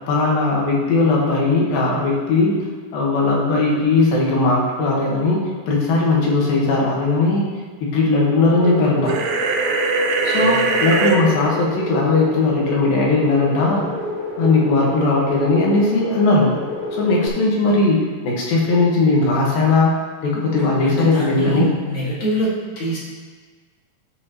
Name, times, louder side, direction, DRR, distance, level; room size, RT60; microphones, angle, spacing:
voice 1, 0.1-2.6 2.9-7.5 7.8-9.2 10.2-13.9 14.4-16.6 16.9-19.9 20.2-21.7, left 3 dB, 85° left, -3 dB, 3.2 m, -18 dB
sound 1, 8.4-17.3, left 2 dB, 30° left, 1.8 m, -29 dB
sound 2, 9.1-11.2, right 4 dB, 75° right, 2.1 m, -20 dB
voice 2, 10.3-10.9 20.3-23.0, right 2 dB, 55° left, -7 dB, 3.1 m, -25 dB
10.5 x 6.8 x 3.0 m, 1.5 s
omnidirectional pair, 4.0 m